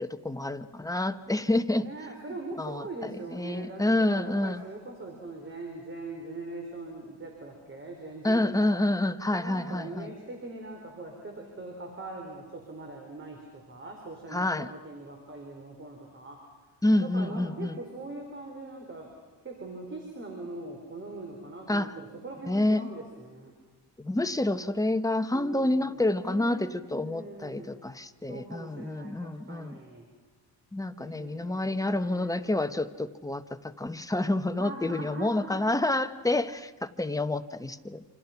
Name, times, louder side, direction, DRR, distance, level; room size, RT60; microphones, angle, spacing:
voice 1, 0.0-1.9 2.6-4.6 8.2-10.1 14.3-14.7 16.8-17.8 21.7-21.9 22.5-22.9 24.0-29.8 30.7-38.0, left 1 dB, 10° left, 9 dB, 0.9 m, -28 dB
voice 2, 1.8-8.8 9.3-16.4 17.0-19.1 19.4-23.5 25.3-27.7 28.3-30.1 31.0-32.5 34.5-35.9, right 2 dB, 30° right, 2 dB, 4.3 m, -41 dB
27.5 x 26.5 x 5.9 m, 1.3 s
cardioid pair, 110°, 38 cm